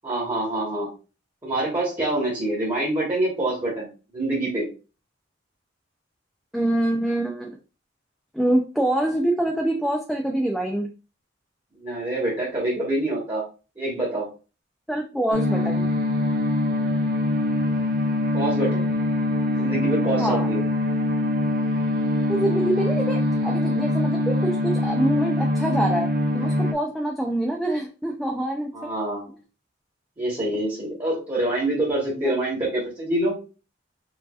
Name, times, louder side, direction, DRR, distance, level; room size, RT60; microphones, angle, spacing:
voice 1, 0.0-0.9 1.4-3.9 4.1-4.7 11.8-13.4 13.8-14.3 18.3-18.9 19.6-20.6 28.7-29.3 30.2-33.4, right 1 dB, 25° right, -5 dB, 1.4 m, -26 dB
voice 2, 6.5-7.6 8.3-10.9 14.9-15.9 20.2-20.5 22.3-28.9 32.2-32.3, right 1 dB, ahead, 1 dB, 0.4 m, -25 dB
sound 1, 15.3-26.7, left 1 dB, 50° right, 0.6 m, -23 dB
4.6 x 2.7 x 2.4 m, 0.33 s
head